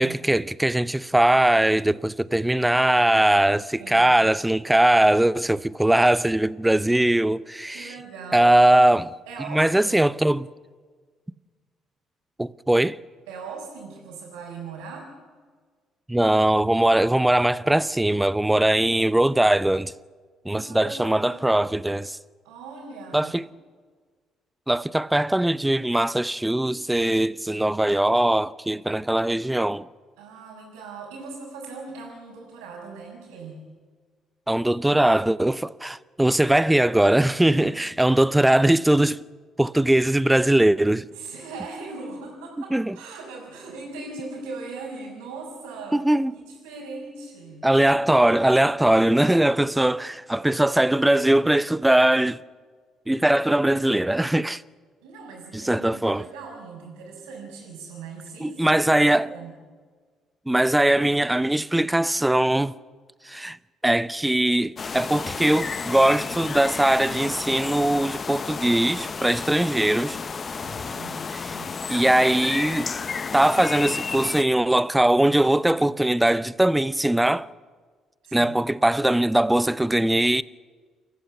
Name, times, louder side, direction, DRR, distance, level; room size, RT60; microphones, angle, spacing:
voice 1, 0.0-7.9 8.3-9.1 9.5-10.5 12.4-13.0 16.1-19.9 20.4-22.2 23.1-23.4 24.7-29.9 34.5-39.2 39.6-41.1 42.7-43.0 45.9-46.4 47.6-52.4 53.1-54.6 55.5-56.2 58.4-59.3 60.5-62.7 63.3-63.6 63.8-70.2 71.3-71.6 71.9-73.0 73.3-77.5 78.3-80.4, right 1 dB, 10° right, 0.7 m, -21 dB
voice 2, 3.8-4.1 7.7-8.5 9.3-10.0 13.3-15.1 20.5-21.7 22.4-23.3 30.2-33.6 37.5-37.8 41.1-46.1 46.6-47.7 55.0-59.5 70.6-71.3 71.5-71.9 78.2-78.6, right 4 dB, 80° right, 5.0 m, -39 dB
sound 1, 64.8-74.4, left 5 dB, 40° left, 0.8 m, -32 dB
29.0 x 14.5 x 6.9 m
hypercardioid pair, 50°, 0 cm